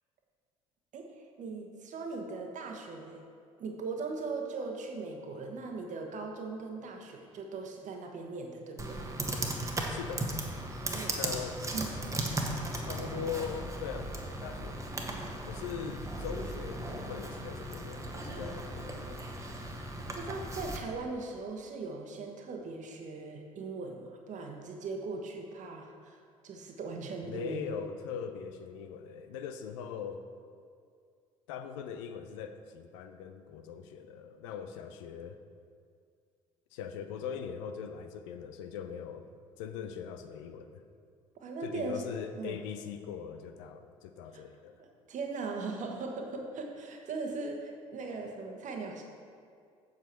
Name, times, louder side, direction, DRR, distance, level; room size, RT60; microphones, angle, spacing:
voice 1, 0.9-3.2 3.6-9.0 10.8-11.2 11.7-11.9 18.3-18.6 20.1-27.7 41.4-42.0 42.4-42.6 44.3-44.4 44.8-49.0, right 3 dB, 45° right, 2 dB, 1.2 m, -39 dB
Computer keyboard, 8.8-20.8, right 1 dB, 20° right, 1.2 m, -37 dB
voice 2, 9.9-10.3 11.1-11.6 12.8-14.8 15.4-19.2 27.3-30.2 31.5-35.4 36.7-39.2 39.6-40.8 41.6-44.8, left 7 dB, 70° left, 8 dB, 0.5 m, -41 dB
7.5 x 7.2 x 4.5 m, 2.2 s
figure-of-eight pair, 50°, 17 cm